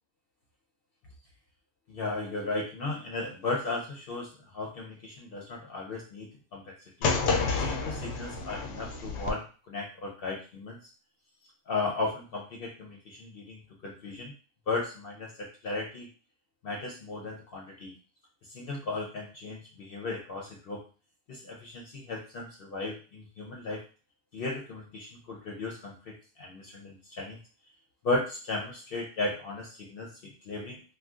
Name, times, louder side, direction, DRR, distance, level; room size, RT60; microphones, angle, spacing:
voice 1, 1.9-7.2 7.6-10.8 11.7-14.3 14.7-16.1 16.6-17.9 18.5-20.8 21.3-23.8 24.3-27.4 28.0-30.8, left 3 dB, 60° left, -1 dB, 0.8 m, -35 dB
sound 1, 7.0-9.3, left 4 dB, 85° left, 0.9 m, -29 dB
2.5 x 2.2 x 3.5 m, 0.36 s
omnidirectional pair, 1.1 m